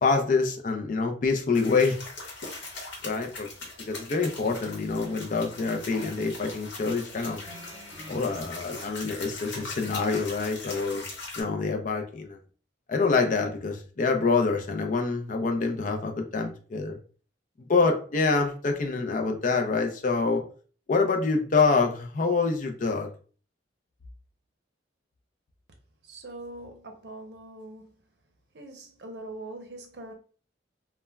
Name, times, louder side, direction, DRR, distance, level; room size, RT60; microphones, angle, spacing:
voice 1, 0.0-2.0 3.0-3.5 3.9-7.4 8.1-11.0 11.4-12.4 12.9-17.0 17.7-20.4 20.9-23.1, left 4 dB, 45° left, 0.4 m, -26 dB
sound 1, 1.5-11.4, left 3 dB, 80° left, 0.9 m, -41 dB
sound 2, 7.1-8.4 9.4-9.5, equal, 20° right, 1.1 m, -46 dB
voice 2, 26.0-27.9 28.5-30.1, right 2 dB, 65° right, 0.6 m, -42 dB
3.2 x 2.1 x 2.2 m
head